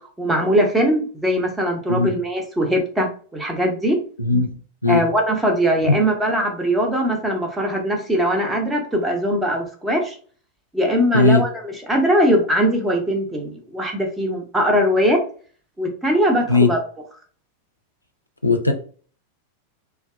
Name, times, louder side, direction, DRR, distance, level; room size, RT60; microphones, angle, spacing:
voice 1, 0.2-4.0 4.9-10.2 10.7-15.2 15.8-16.8, equal, 10° right, 2 dB, 0.7 m, -20 dB
voice 2, 4.2-4.5 4.8-5.0 5.9-6.0 11.1-11.4 16.5-16.7 18.4-18.7, left 3 dB, 85° left, 5 dB, 0.4 m, -17 dB
2.7 x 2.2 x 2.2 m, 0.42 s
figure-of-eight pair, 90°, 0 cm